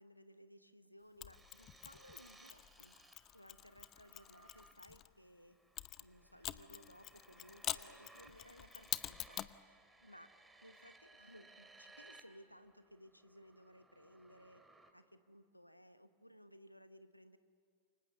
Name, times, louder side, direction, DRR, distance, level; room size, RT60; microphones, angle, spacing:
voice 1, 0.0-3.0 3.3-5.6 6.0-9.5 10.0-10.3 10.6-14.6 14.9-17.4, equal, 90° left, 11 dB, 1.1 m, -60 dB
Mechanisms, 1.2-5.1 5.8-9.6, left 12 dB, 35° left, 0.7 m, -46 dB
sound 1, 1.3-12.2 12.5-14.9, right 2 dB, 10° right, 2.6 m, -63 dB
29.0 x 25.0 x 6.9 m, 2.4 s
figure-of-eight pair, 90°, 0 cm